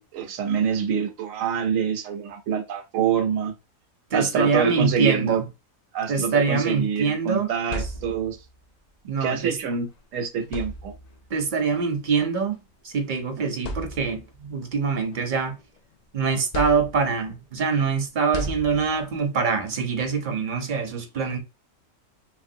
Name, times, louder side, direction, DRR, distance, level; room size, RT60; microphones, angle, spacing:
voice 1, 0.0-3.5 4.1-5.4 5.9-8.4 9.2-10.9 13.4-13.5, right 7 dB, 75° right, 1.0 m, -26 dB
voice 2, 4.1-5.4 6.1-7.5 9.0-9.6 11.3-12.6 12.8-15.6 16.1-21.4, right 5 dB, 50° right, 0.6 m, -24 dB
sound 1, 7.7-8.5 9.8-9.9 10.4-11.3 12.4-12.5 13.1-13.2 13.6-14.4 14.9-16.0 16.5-17.3 18.3-19.2, equal, 85° left, 0.3 m, -35 dB
3.1 x 2.5 x 2.6 m
omnidirectional pair, 1.4 m